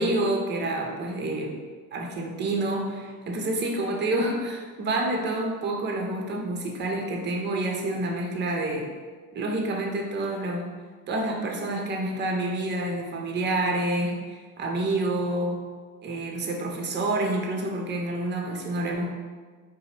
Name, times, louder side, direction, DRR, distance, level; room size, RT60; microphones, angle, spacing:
voice 1, 0.0-1.5 1.9-8.9 9.3-10.7 11.1-15.6 16.0-19.1, right 2 dB, 25° right, 1 dB, 0.6 m, -28 dB
3.9 x 2.1 x 4.2 m, 1.5 s
figure-of-eight pair, 60°, 46 cm